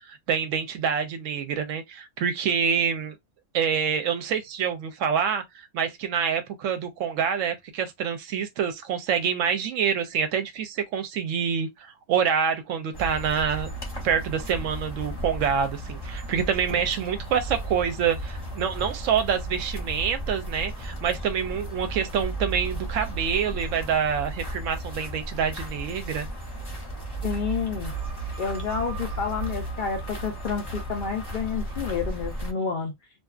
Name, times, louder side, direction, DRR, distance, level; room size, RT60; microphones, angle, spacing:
voice 1, 0.1-3.2 3.5-13.7 14.0-26.3, right 7 dB, 70° right, 0.9 m, -26 dB
sound 1, 12.9-32.5, right 2 dB, 20° left, 0.7 m, -34 dB
voice 2, 27.2-27.9 28.4-32.9, left 6 dB, 80° left, 0.4 m, -29 dB
2.6 x 2.3 x 2.3 m
omnidirectional pair, 1.5 m